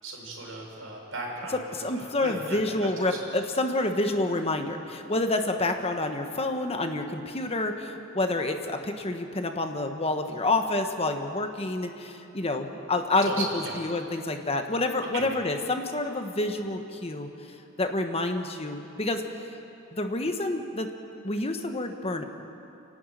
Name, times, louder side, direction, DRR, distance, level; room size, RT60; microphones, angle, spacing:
voice 1, 0.0-3.2 13.2-13.7 15.1-15.3, right 2 dB, 90° right, -1 dB, 5.1 m, -37 dB
voice 2, 1.5-17.3 17.8-19.2 19.9-20.9 21.2-22.2, left 2 dB, 30° left, 5 dB, 1.3 m, -28 dB
30.0 x 11.0 x 9.2 m, 2.8 s
head